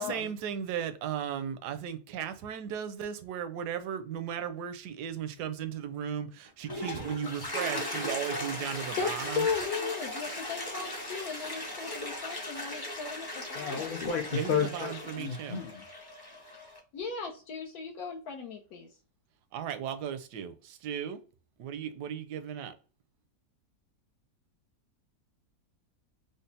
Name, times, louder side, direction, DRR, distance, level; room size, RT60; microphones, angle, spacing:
voice 1, 0.0-9.5 14.3-15.6 19.5-21.2 21.6-22.7, right 8 dB, 80° right, 1.1 m, -36 dB
Toilet flush, 6.5-16.8, left 1 dB, 25° left, 0.5 m, -38 dB
voice 2, 9.0-13.9 16.9-18.9, left 5 dB, 70° left, 1.2 m, -36 dB
voice 3, 13.5-15.8, left 6 dB, 90° left, 0.4 m, -32 dB
5.1 x 2.0 x 2.6 m
omnidirectional pair, 1.8 m